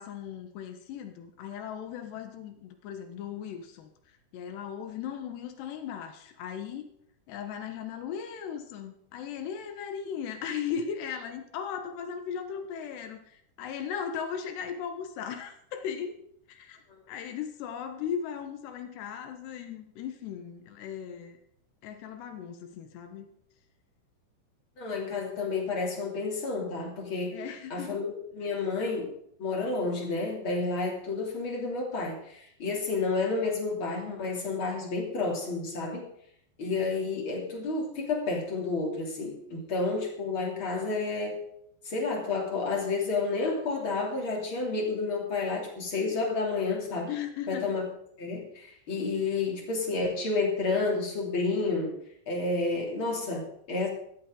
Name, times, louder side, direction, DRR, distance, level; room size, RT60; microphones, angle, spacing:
voice 1, 0.0-3.9 4.3-6.9 7.3-16.8 17.1-21.4 21.8-23.3 27.3-28.0 47.1-47.7, left 8 dB, 75° left, 7 dB, 3.2 m, -37 dB
voice 2, 24.8-27.4 27.7-29.1 29.4-36.0 36.6-41.5 41.8-47.1 47.5-47.8 48.2-52.0 52.3-53.9, left 3 dB, 30° left, -1 dB, 3.2 m, -30 dB
16.0 x 13.0 x 3.9 m, 0.71 s
omnidirectional pair, 5.2 m